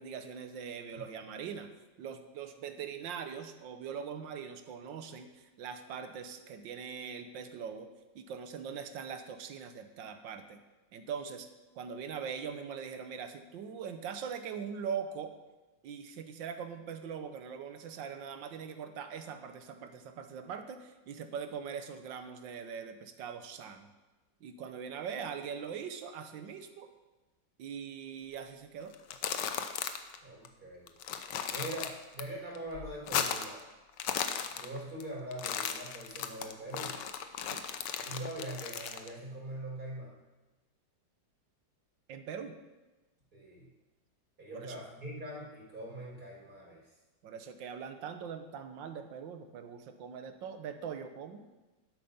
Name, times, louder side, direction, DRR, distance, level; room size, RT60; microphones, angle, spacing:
voice 1, 0.0-1.7 2.0-10.6 10.9-11.5 11.8-15.3 15.8-23.9 24.4-26.9 27.6-28.9 37.5-37.7 42.1-42.6 44.5-44.8 47.2-51.5, right 7 dB, 80° right, 8 dB, 1.6 m, -42 dB
sound 1, 28.9-30.2 30.5-30.6 30.9-32.2 32.6-33.6 33.9-35.0 35.3-39.1, left 8 dB, 75° left, 1.4 m, -36 dB
voice 2, 30.2-30.9 31.5-33.6 34.5-37.0 38.0-40.1 43.3-43.7 44.4-46.9, right 1 dB, 55° right, -5 dB, 4.6 m, -42 dB
11.5 x 8.2 x 5.5 m, 1.1 s
omnidirectional pair, 2.0 m